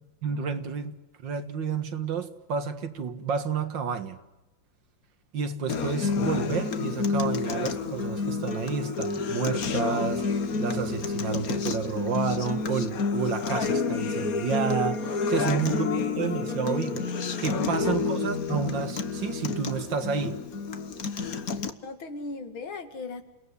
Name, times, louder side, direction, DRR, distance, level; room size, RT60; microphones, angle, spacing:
voice 1, 0.2-0.9 1.2-4.2 5.3-17.1 17.4-20.4, right 6 dB, 65° right, 2.3 m, -30 dB
Acoustic guitar, 5.7-21.7, left 4 dB, 50° left, 1.6 m, -29 dB
voice 2, 17.6-17.9 21.8-23.2, left 4 dB, 85° left, 2.9 m, -36 dB
29.0 x 18.0 x 9.9 m
omnidirectional pair, 2.1 m